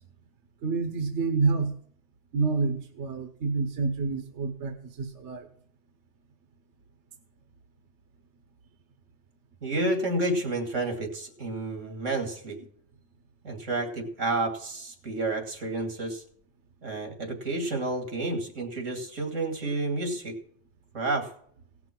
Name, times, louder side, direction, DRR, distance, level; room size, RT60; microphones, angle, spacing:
voice 1, 0.6-1.7 2.3-5.5, right 4 dB, 65° right, 7 dB, 1.3 m, -28 dB
voice 2, 9.6-12.6 13.4-16.2 16.8-20.4 20.9-21.3, right 2 dB, 90° right, 4 dB, 2.6 m, -30 dB
17.0 x 6.1 x 5.9 m, 0.62 s
omnidirectional pair, 1.3 m